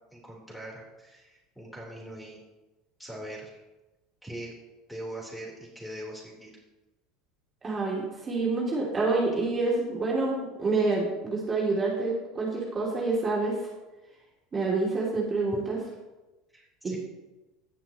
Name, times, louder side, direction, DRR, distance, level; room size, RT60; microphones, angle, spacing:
voice 1, 0.1-2.4 3.0-3.6 4.2-4.5 4.9-6.5 16.5-17.0, right 1 dB, 5° left, -3 dB, 3.8 m, -41 dB
voice 2, 7.6-13.6 14.5-15.8 16.8-17.0, right 3 dB, 30° right, -4 dB, 2.7 m, -27 dB
17.5 x 5.8 x 3.1 m, 1.1 s
hypercardioid pair, 75°, 0 cm